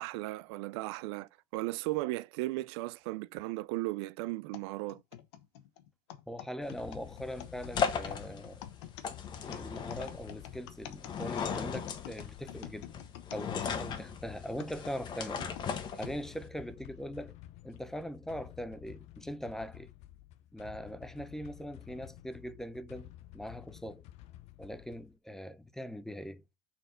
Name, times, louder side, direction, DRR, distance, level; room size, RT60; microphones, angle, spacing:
voice 1, 0.0-5.0, right 19 dB, 80° right, 0.4 m, -36 dB
sound 1, 4.5-14.1 14.6-16.2 16.8-16.9 17.8-18.0, left 11 dB, 85° left, 1.2 m, -48 dB
voice 2, 6.3-8.6 9.5-12.9 13.3-15.6 15.9-17.4 17.6-19.9 20.5-24.0 24.6-26.4, equal, 5° left, 0.5 m, -41 dB
sound 2, 6.6-16.5, left 7 dB, 30° left, 1.2 m, -38 dB
sound 3, 6.8-25.2, left 14 dB, 50° left, 0.6 m, -52 dB
6.6 x 4.5 x 4.9 m
supercardioid pair, 140°, 14 cm